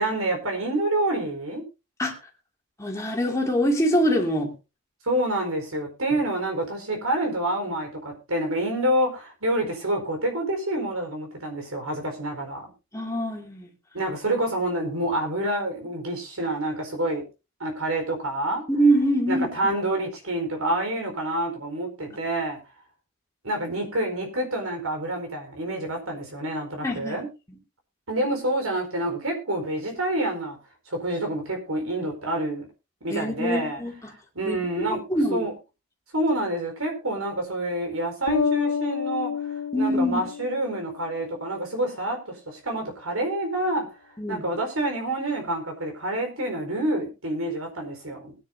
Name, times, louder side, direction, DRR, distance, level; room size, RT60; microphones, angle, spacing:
voice 1, 0.0-1.6 5.0-12.7 13.9-17.2 17.6-18.6 19.3-22.6 23.4-27.3 28.1-30.6 30.9-32.7 33.0-33.8 34.3-35.0 35.3-35.5 36.1-39.3 39.8-43.9 44.3-48.3, right 1 dB, 75° right, 3 dB, 4.6 m, -27 dB
voice 2, 2.8-4.5 6.1-6.2 12.9-13.7 18.7-19.5 26.8-27.2 33.1-34.1 34.4-35.5 39.7-40.2 44.2-44.4, equal, 15° left, 0 dB, 2.6 m, -24 dB
Bass guitar, 38.3-40.9, left 7 dB, 65° left, 2.3 m, -28 dB
21.0 x 9.8 x 2.8 m, 0.28 s
head